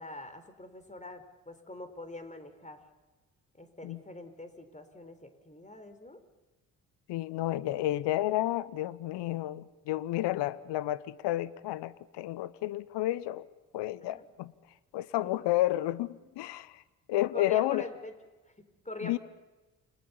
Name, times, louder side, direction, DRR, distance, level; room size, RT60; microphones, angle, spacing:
voice 1, 0.0-2.8 3.6-6.2 14.0-14.3 16.2-16.4 17.3-18.1 18.6-19.2, left 1 dB, 15° left, 4.4 m, -44 dB
voice 2, 7.1-13.5 13.7-14.5 14.9-16.8 17.1-17.9 19.0-19.2, left 15 dB, 70° left, 1.0 m, -31 dB
28.5 x 20.5 x 7.2 m
hypercardioid pair, 45°, 43 cm